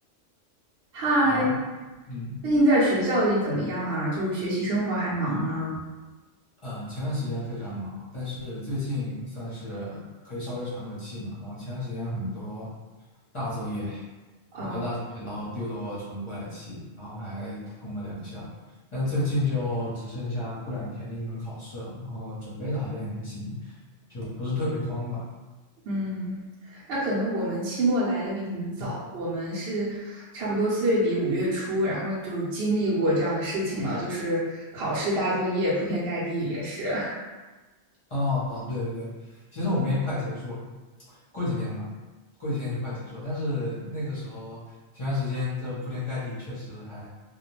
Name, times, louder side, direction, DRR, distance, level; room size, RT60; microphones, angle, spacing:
voice 1, 0.9-1.5 2.4-5.7 14.5-14.8 25.8-37.2, right 1 dB, 60° right, -8 dB, 0.8 m, -26 dB
voice 2, 2.1-2.4 6.6-12.7 13.3-14.0 14.6-18.5 18.9-23.8 24.1-25.2 28.8-28.9 38.1-40.7 41.1-41.9 42.4-44.6 44.9-47.1, left 2 dB, 30° left, -9 dB, 0.7 m, -32 dB
2.3 x 2.1 x 3.0 m, 1.2 s
omnidirectional pair, 1.3 m